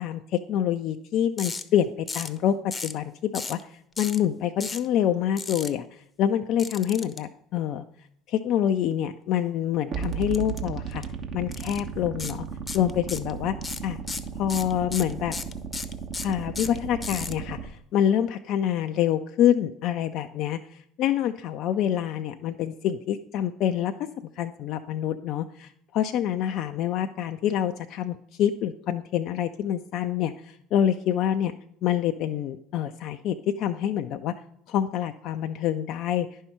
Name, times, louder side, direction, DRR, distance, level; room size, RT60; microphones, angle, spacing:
voice 1, 0.0-3.6 4.0-7.8 8.3-11.0 11.3-12.4 12.7-13.6 13.8-14.0 14.4-15.4 16.2-23.9 24.4-31.6 31.8-34.3 34.7-36.3, left 10 dB, 55° left, 8 dB, 0.4 m, -26 dB
sound 1, 1.4-1.6 2.1-2.4 2.7-3.0 3.3-3.6 4.0-4.2 4.6-4.9 5.4-5.7 6.6-7.2 10.3-10.6 10.9-11.0 11.5-11.8 12.2-12.4 12.7-13.3 13.6-17.3, left 4 dB, 20° left, 0.7 m, -34 dB
sound 2, 9.9-17.7, right 7 dB, 50° right, 1.1 m, -35 dB
10.5 x 5.6 x 4.3 m, 0.69 s
hypercardioid pair, 65°, 0 cm